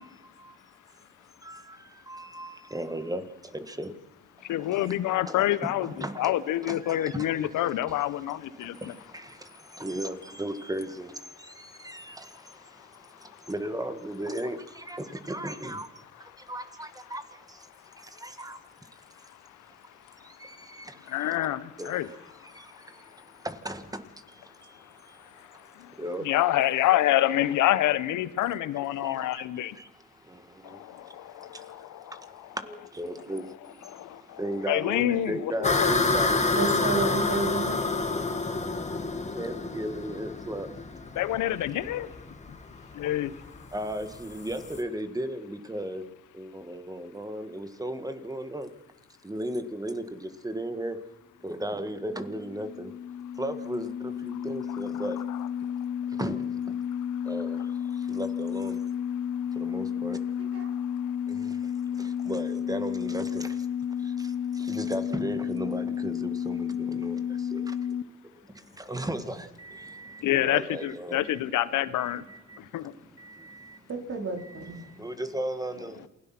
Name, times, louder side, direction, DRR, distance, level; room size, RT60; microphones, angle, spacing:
voice 1, 0.2-0.6 1.4-3.9 4.4-5.0 5.3-5.4 5.6-6.3 6.6-7.5 7.9-19.3 19.7-19.8 20.0-21.4 21.8-26.3 29.0-37.1 39.3-40.7 43.7-48.7 49.2-51.0 51.4-52.9 53.4-55.2 56.1-56.7 57.2-58.8 59.6-60.2 61.3-63.7 64.0-68.0 68.4-71.4 72.0-73.8 74.4-76.1, right 1 dB, 10° right, 1.9 m, -37 dB
voice 2, 4.5-8.9 21.1-22.1 26.2-29.7 30.9-32.2 33.8-36.0 37.7-37.8 41.2-42.1 43.0-43.3 55.0-55.5 70.2-72.2 72.7-72.8, left 13 dB, 85° left, 1.1 m, -27 dB
sound 1, 35.6-44.8, left 3 dB, 25° left, 2.1 m, -29 dB
voice 3, 36.5-37.8 60.5-60.7 73.9-74.8, right 4 dB, 50° right, 4.6 m, -30 dB
sound 2, 51.8-68.0, left 8 dB, 55° left, 0.8 m, -32 dB
28.0 x 17.0 x 6.1 m
cardioid pair, 90°, 30 cm